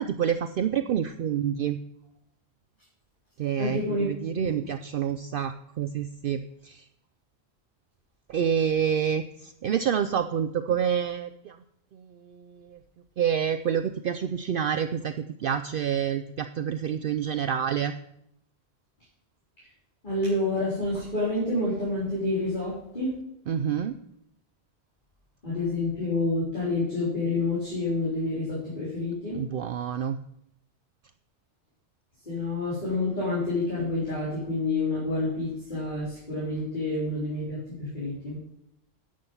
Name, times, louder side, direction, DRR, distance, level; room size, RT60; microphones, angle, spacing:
voice 1, 0.0-1.8 3.4-6.9 8.3-11.6 11.9-12.8 13.2-17.9 23.5-24.0 29.3-30.2, right 8 dB, 60° right, 10 dB, 0.7 m, -28 dB
voice 2, 3.6-4.1 4.3-4.5 19.6-19.7 20.0-23.1 25.4-29.4 32.2-38.4, left 2 dB, 45° left, -8 dB, 4.3 m, -28 dB
11.0 x 7.7 x 5.5 m, 0.79 s
omnidirectional pair, 1.1 m